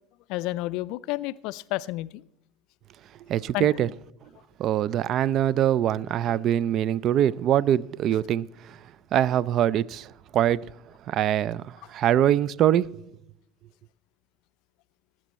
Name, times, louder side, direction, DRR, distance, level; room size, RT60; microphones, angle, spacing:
voice 1, 0.3-2.2 3.5-3.7, left 18 dB, 55° left, 0.3 m, -30 dB
voice 2, 3.3-3.9 4.6-8.8 9.1-10.6 11.1-13.0, right 11 dB, 45° right, 0.4 m, -23 dB
18.0 x 7.6 x 4.2 m
figure-of-eight pair, 75°, 0 cm